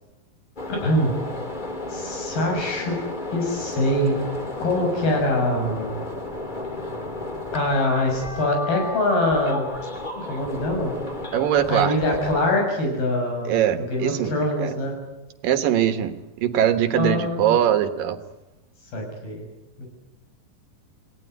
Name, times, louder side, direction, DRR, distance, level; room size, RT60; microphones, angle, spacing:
sound 1, 0.6-12.5, left 2 dB, 20° left, 1.4 m, -33 dB
voice 1, 0.7-1.1 1.9-3.0 3.3-4.2 4.6-5.9 7.5-9.7 10.2-10.9 11.7-13.5 13.9-15.0 16.9-17.5 18.9-19.4 19.8-19.9, left 1 dB, 85° left, 2 dB, 8.8 m, -23 dB
voice 2, 11.3-11.9 13.5-14.3 14.6-14.7 15.4-18.2, right 10 dB, 70° right, 9 dB, 2.9 m, -22 dB
28.5 x 18.0 x 9.6 m, 1.0 s
omnidirectional pair, 4.1 m